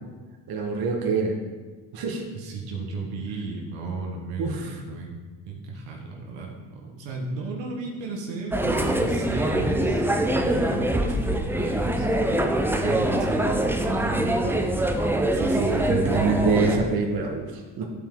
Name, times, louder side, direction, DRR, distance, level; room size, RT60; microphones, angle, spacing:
voice 1, 0.5-1.3 1.9-2.2 4.4-4.7 12.7-13.0 15.3-17.8, right 4 dB, 55° right, 1 dB, 1.3 m, -26 dB
voice 2, 2.3-5.2 5.5-10.1 10.4-12.1 12.8-14.8, right 3 dB, 80° right, 0 dB, 1.3 m, -34 dB
sound 1, 8.5-16.8, right 1 dB, 5° right, 0.5 m, -24 dB
10.0 x 4.6 x 3.7 m, 1.3 s
supercardioid pair, 80°, 43 cm